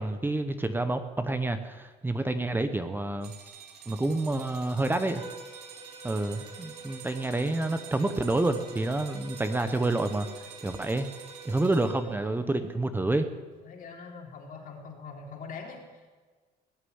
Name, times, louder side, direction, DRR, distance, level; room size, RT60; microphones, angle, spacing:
voice 1, 0.0-3.3 3.9-5.2 6.0-10.3 10.6-11.1 11.4-13.3, right 2 dB, 10° right, 9 dB, 0.9 m, -28 dB
sound 1, 3.2-12.2, right 8 dB, 65° right, 3.8 m, -48 dB
Bowed string instrument, 5.0-11.8, right 3 dB, 30° right, 3.9 m, -47 dB
voice 2, 9.6-10.0 11.8-12.4 13.6-16.2, left 5 dB, 55° left, 1 dB, 3.4 m, -44 dB
18.5 x 6.8 x 9.6 m, 1.4 s
cardioid pair, 110°, 17 cm